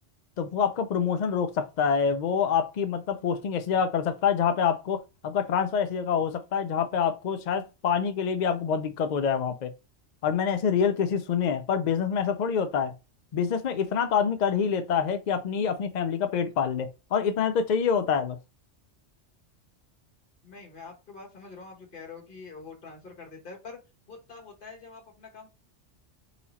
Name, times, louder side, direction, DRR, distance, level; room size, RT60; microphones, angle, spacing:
voice 1, 0.4-9.7 10.2-12.9 13.3-18.4, left 7 dB, 65° left, 0.4 m, -26 dB
voice 2, 20.4-23.8 24.1-25.5, left 4 dB, 45° left, 1.7 m, -45 dB
4.2 x 2.8 x 4.1 m
omnidirectional pair, 1.3 m